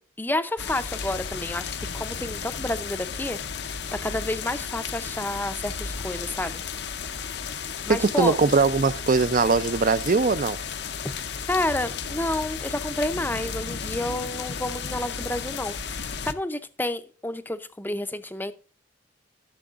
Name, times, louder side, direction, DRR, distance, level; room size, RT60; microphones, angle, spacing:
voice 1, 0.0-3.4 4.0-6.6 7.9-8.3 11.2-18.5, left 1 dB, 10° left, 0.5 m, -30 dB
sound 1, 0.6-16.3, left 6 dB, 60° left, 0.6 m, -34 dB
voice 2, 7.9-10.6, right 4 dB, 45° right, 0.5 m, -21 dB
14.0 x 7.0 x 2.4 m
head